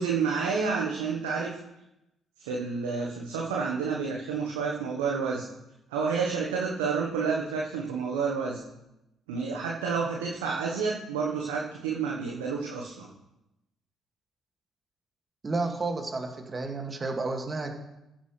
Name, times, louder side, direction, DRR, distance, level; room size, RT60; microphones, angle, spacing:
voice 1, 0.0-1.6 2.4-5.4 5.9-8.6 9.3-13.1, right 5 dB, 75° right, -1 dB, 1.3 m, -29 dB
voice 2, 15.4-17.7, right 3 dB, 30° right, 3 dB, 2.3 m, -31 dB
15.0 x 10.5 x 3.4 m, 0.91 s
figure-of-eight pair, 45°, 0 cm